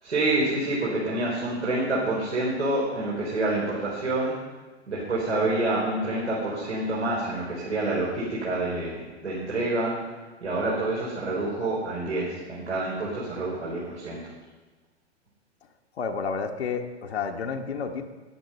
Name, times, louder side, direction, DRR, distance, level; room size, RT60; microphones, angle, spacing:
voice 1, 0.0-4.3 4.9-10.1 10.4-14.2, right 2 dB, 75° right, -6 dB, 4.0 m, -27 dB
voice 2, 16.0-18.0, left 5 dB, 65° left, 3 dB, 1.2 m, -30 dB
13.5 x 10.0 x 5.3 m, 1.3 s
figure-of-eight pair, 105°, 34 cm